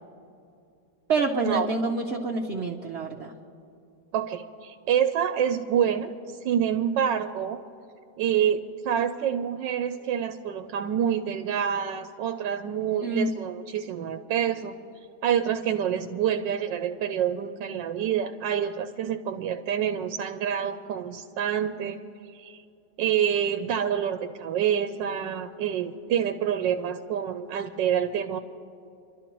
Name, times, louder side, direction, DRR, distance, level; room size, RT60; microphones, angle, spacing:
voice 1, 1.1-3.3 13.0-13.3 17.6-17.8, right 3 dB, 50° right, 0 dB, 0.8 m, -27 dB
voice 2, 4.1-6.1 6.4-7.6 8.2-14.8 15.2-22.0 22.3-22.6 23.0-28.4, right 9 dB, 85° right, 8 dB, 1.2 m, -27 dB
29.0 x 12.0 x 3.0 m, 2.6 s
omnidirectional pair, 1.9 m